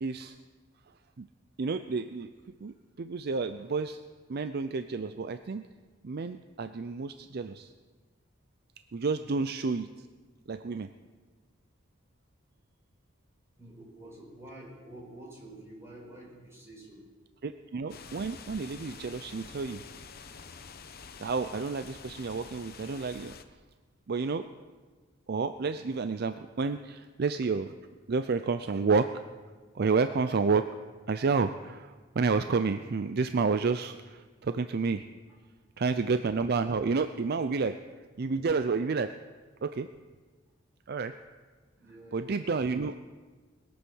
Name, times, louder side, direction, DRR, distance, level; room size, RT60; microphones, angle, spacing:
voice 1, 0.0-0.4 1.2-1.3 1.6-2.3 2.6-4.0 4.3-5.7 6.0-7.7 8.9-10.1 10.5-10.9 17.4-19.8 21.2-23.3 24.1-24.5 25.3-27.7 28.1-29.1 29.7-30.7 31.1-35.0 35.8-37.8 38.2-39.1 39.6-39.9 40.9-41.1 42.1-43.1, right 4 dB, 55° right, 10 dB, 0.5 m, -30 dB
voice 2, 13.6-17.1 41.8-42.5, right 1 dB, 15° right, -4 dB, 5.1 m, -48 dB
sound 1, 17.9-23.4, left 5 dB, 50° left, 0.9 m, -47 dB
21.5 x 8.5 x 6.3 m, 1.4 s
head